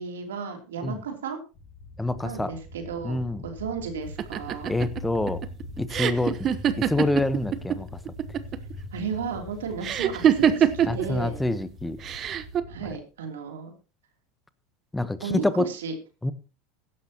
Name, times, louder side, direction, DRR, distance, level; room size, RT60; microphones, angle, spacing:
voice 1, 0.0-1.4 2.2-4.7 8.9-11.4 12.7-13.7 15.2-15.9, right 6 dB, 85° right, 4 dB, 3.0 m, -34 dB
sound 1, 1.5-12.9, left 1 dB, 45° left, 6.1 m, -41 dB
voice 2, 2.0-2.5 3.0-3.4 4.7-5.4 5.8-6.5 6.8-7.9 10.9-12.0 14.9-15.7 16.2-16.3, left 2 dB, 10° left, 14 dB, 1.0 m, -26 dB
sound 2, 4.2-7.8 8.1-8.7 9.8-11.1 12.0-12.6, right 9 dB, 40° right, 1.0 m, -23 dB
16.0 x 11.5 x 2.9 m, 0.32 s
hypercardioid pair, 95°, 0 cm